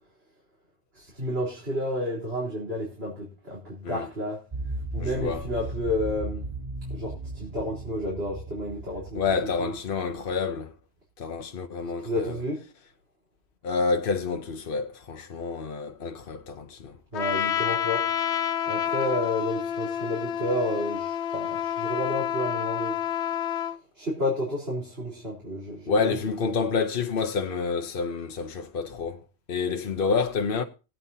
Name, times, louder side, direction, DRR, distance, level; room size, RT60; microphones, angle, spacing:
voice 1, 0.9-4.4 4.9-6.5 6.9-9.2 9.6-9.7 12.0-12.6 17.1-18.1 18.7-23.0 23.9-26.2, left 1 dB, 65° right, 4.1 m, -31 dB
sound 1, 4.5-10.3, right 2 dB, 25° right, 1.1 m, -36 dB
voice 2, 5.0-5.4 9.1-10.7 11.2-12.3 13.6-16.9 25.9-29.2 29.5-30.6, left 5 dB, 60° left, 1.0 m, -28 dB
Trumpet, 17.1-23.8, left 9 dB, 85° left, 1.0 m, -29 dB
21.0 x 9.0 x 2.7 m
omnidirectional pair, 1.1 m